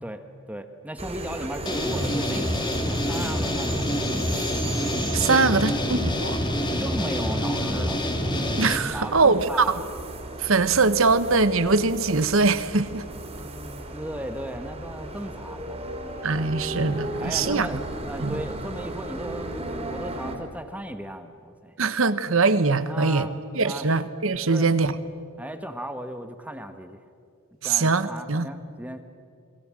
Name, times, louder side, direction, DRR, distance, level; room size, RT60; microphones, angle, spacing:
voice 1, 0.0-4.0 5.3-5.5 6.8-8.1 8.9-9.9 13.3-15.8 17.2-21.8 22.8-23.3 23.6-24.0 24.5-24.7 25.4-27.0 27.6-29.0, equal, 5° right, 7 dB, 1.2 m, -36 dB
sound 1, 1.0-20.4, right 1 dB, 30° right, 4.0 m, -35 dB
sound 2, 1.7-8.8, left 1 dB, 20° left, 2.3 m, -27 dB
voice 2, 5.1-6.4 8.6-9.6 10.4-13.0 16.2-17.7 18.2-18.4 21.8-23.3 23.5-24.9 27.6-28.5, right 4 dB, 65° right, 13 dB, 1.2 m, -22 dB
28.0 x 22.5 x 7.6 m, 2.3 s
head